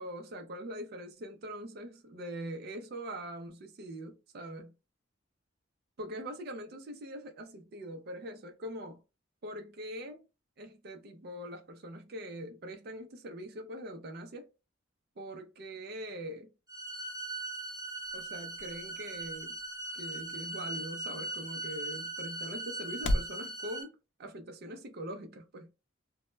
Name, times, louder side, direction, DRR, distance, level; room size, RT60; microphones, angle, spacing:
voice 1, 0.0-4.7 6.0-9.0 9.4-10.2 10.6-14.5 15.2-16.5 18.1-19.6 19.9-25.7, right 1 dB, 50° right, 0.4 m, -43 dB
sound 1, 16.7-23.8, right 2 dB, 20° right, 0.8 m, -40 dB
sound 2, 17.1-23.4, left 1 dB, 65° left, 0.3 m, -40 dB
2.1 x 2.0 x 3.1 m
head